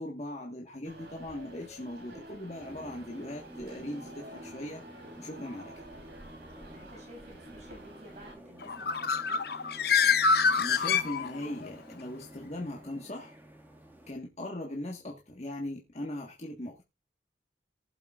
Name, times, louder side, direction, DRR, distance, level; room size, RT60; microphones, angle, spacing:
voice 1, 0.0-4.8 5.2-5.8 10.6-13.4 14.1-16.8, left 1 dB, 40° left, 0 dB, 1.5 m, -39 dB
sound 1, 0.8-8.3, right 1 dB, 65° right, 3.1 m, -50 dB
sound 2, 2.6-14.1, right 1 dB, 10° right, 2.0 m, -51 dB
voice 2, 6.7-9.6 14.4-14.6, equal, 40° right, 0 dB, 6.7 m, -53 dB
Bird, 8.6-11.7, left 5 dB, 60° left, 0.8 m, -26 dB
19.0 x 8.0 x 2.5 m, 0.26 s
head